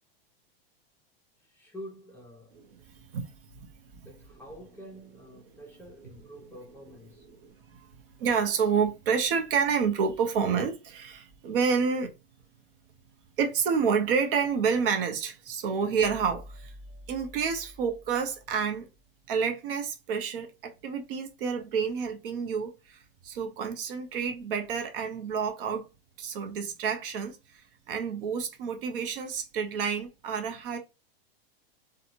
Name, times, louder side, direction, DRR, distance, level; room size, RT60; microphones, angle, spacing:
voice 1, 1.4-2.6 4.0-7.3, equal, 5° left, 0.7 m, -47 dB
voice 2, 2.5-5.7 6.0-7.9 8.2-12.1 13.4-16.7 17.1-18.9 19.3-25.9 26.2-30.8, right 6 dB, 65° right, 0.9 m, -30 dB
sound 1, 15.8-19.0, equal, 45° right, 1.4 m, -49 dB
2.9 x 2.4 x 2.6 m
supercardioid pair, 140°, 30 cm